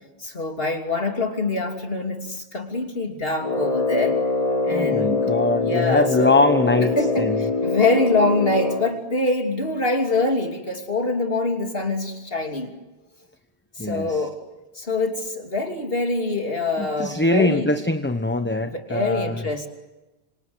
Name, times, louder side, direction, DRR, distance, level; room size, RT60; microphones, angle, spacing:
voice 1, 0.2-4.2 4.6-5.2 5.6-6.4 7.0-12.7 13.8-14.4 14.7-17.7 18.6-19.7, left 2 dB, 60° left, 4 dB, 3.2 m, -24 dB
Brass instrument, 3.4-9.0, left 3 dB, 35° left, 1.3 m, -23 dB
voice 2, 4.7-7.4 13.8-14.2 16.8-19.4, left 2 dB, 10° left, 8 dB, 1.0 m, -22 dB
27.0 x 26.5 x 8.1 m, 1.1 s
omnidirectional pair, 1.1 m